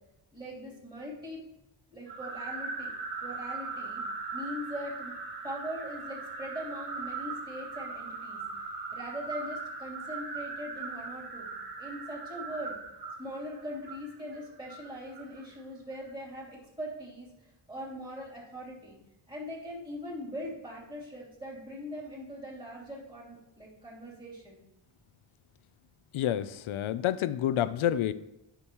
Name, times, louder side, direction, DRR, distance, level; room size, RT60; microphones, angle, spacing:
voice 1, 0.3-1.4 1.9-2.9 3.2-4.0 4.3-5.1 5.4-11.5 11.8-12.8 13.2-19.0 19.3-24.6, equal, 10° right, 3.0 m, -41 dB
sound 1, 2.1-15.4, right 4 dB, 50° right, 1.8 m, -39 dB
voice 2, 26.1-28.1, left 11 dB, 80° left, 0.6 m, -28 dB
9.9 x 5.9 x 3.0 m
wide cardioid pair, 100°, 48 cm